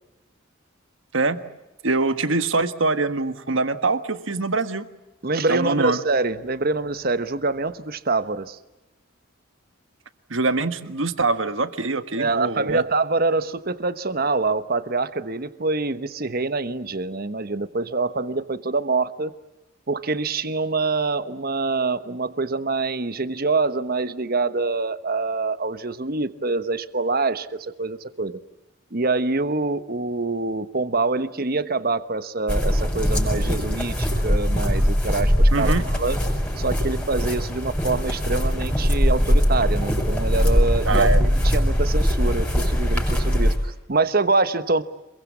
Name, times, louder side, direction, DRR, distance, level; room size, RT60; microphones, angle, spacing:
voice 1, 1.8-4.8 5.5-6.0 10.3-12.8 35.5-35.8 40.9-41.2, right 3 dB, 65° right, 11 dB, 1.5 m, -23 dB
voice 2, 5.2-8.6 12.2-19.3 19.9-28.4 28.9-36.2 36.6-44.8, right 3 dB, 45° right, 12 dB, 1.2 m, -25 dB
sound 1, 32.5-43.6, equal, 10° left, 6.3 m, -21 dB
27.0 x 22.5 x 8.5 m, 0.99 s
head